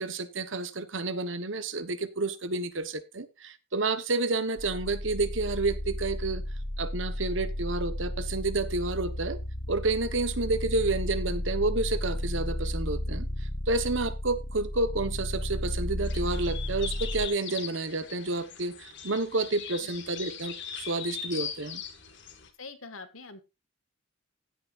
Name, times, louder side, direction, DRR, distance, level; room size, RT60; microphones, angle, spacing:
voice 1, 0.0-6.4 6.8-9.4 9.7-13.3 13.7-21.8, right 3 dB, 65° right, 1.2 m, -30 dB
sound 1, 4.6-17.3, left 1 dB, 45° left, 1.1 m, -33 dB
sound 2, 16.0-22.5, left 8 dB, 60° left, 1.9 m, -40 dB
voice 2, 22.6-23.4, left 3 dB, 80° left, 1.8 m, -44 dB
16.0 x 9.2 x 2.6 m
head